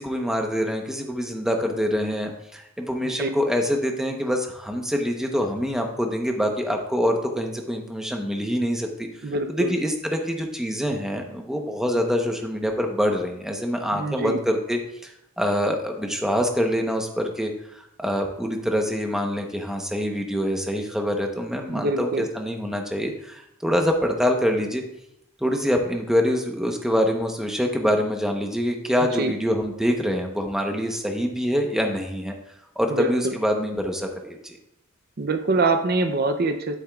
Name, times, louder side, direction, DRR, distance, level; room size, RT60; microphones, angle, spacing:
voice 1, 0.0-9.1 9.5-17.5 18.0-24.8 25.4-32.3 32.8-34.6, equal, ahead, 2 dB, 0.9 m, -25 dB
voice 2, 9.2-9.7 13.9-14.4 21.7-22.2 29.0-29.3 32.9-33.4 35.2-36.8, right 2 dB, 45° right, 7 dB, 0.5 m, -24 dB
10.5 x 8.6 x 2.3 m, 0.80 s
head